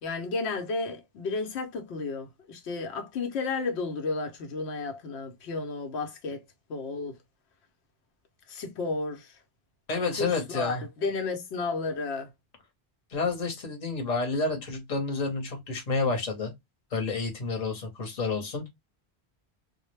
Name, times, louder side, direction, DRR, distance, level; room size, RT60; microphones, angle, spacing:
voice 1, 0.0-6.4 6.7-7.2 8.5-9.4 10.2-12.3, left 3 dB, 85° left, 0.9 m, -32 dB
voice 2, 9.9-10.8 13.1-16.5 16.9-18.7, left 3 dB, 40° left, 0.9 m, -29 dB
2.2 x 2.0 x 3.1 m
omnidirectional pair, 1.1 m